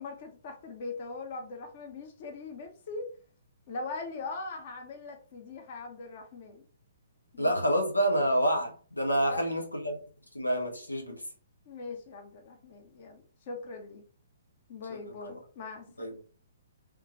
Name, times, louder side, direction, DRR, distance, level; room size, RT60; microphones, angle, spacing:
voice 1, 0.0-3.1 3.7-6.6 7.3-7.5 9.2-9.6 11.7-14.0 14.7-16.2, left 3 dB, 40° left, 1.0 m, -41 dB
voice 2, 7.4-10.0 10.3-11.2 16.0-16.1, right 1 dB, 85° left, 0.9 m, -28 dB
3.5 x 3.3 x 3.0 m
figure-of-eight pair, 125°, 0 cm